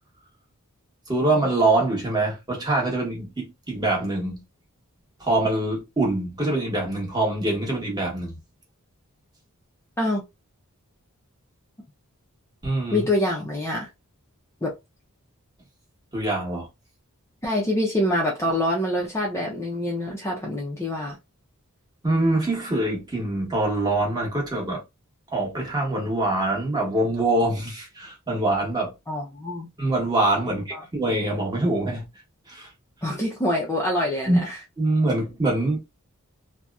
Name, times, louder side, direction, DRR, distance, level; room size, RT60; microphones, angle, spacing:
voice 1, 1.1-4.4 5.2-8.4 12.6-13.1 16.1-16.7 22.0-24.8 25.3-28.9 29.8-32.0 32.5-32.7 34.3-34.4 34.8-35.8, right 2 dB, 20° right, 1.0 m, -24 dB
voice 2, 12.9-13.9 14.6-14.7 17.4-21.2 29.1-29.7 30.7-30.8 33.0-34.6, left 1 dB, 10° left, 0.4 m, -25 dB
2.7 x 2.0 x 2.3 m
head